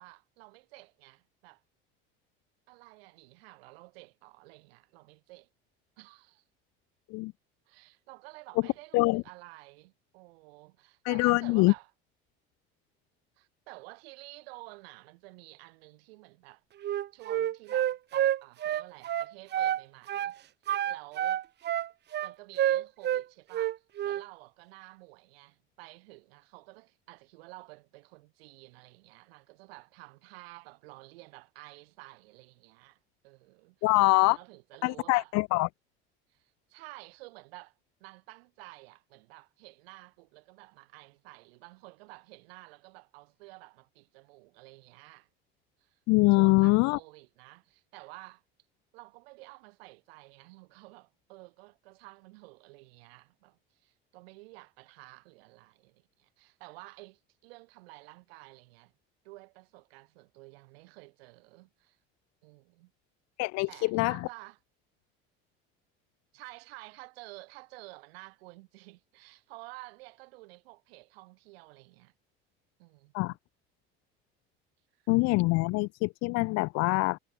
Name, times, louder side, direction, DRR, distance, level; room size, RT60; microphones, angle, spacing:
voice 1, 0.0-1.6 2.7-5.5 6.0-6.4 7.7-11.9 13.4-16.6 17.1-20.3 20.9-21.4 22.2-23.7 24.0-33.9 34.1-35.3 36.3-45.3 45.8-46.0 46.3-48.4 48.9-58.9 59.2-62.0 62.4-62.9 63.7-64.6 66.3-72.1 72.8-73.4, right 24 dB, 80° right, 4.4 m, -51 dB
voice 2, 11.0-11.7 33.8-34.4 34.8-35.7 46.1-47.0 63.4-64.3 73.1-73.3 75.1-77.2, left 24 dB, 65° left, 0.7 m, -24 dB
Wind instrument woodwind instrument, 16.8-19.8 20.1-20.3 20.7-23.2 23.5-24.2, right 11 dB, 35° right, 0.6 m, -29 dB
hypercardioid pair, 80°, 30 cm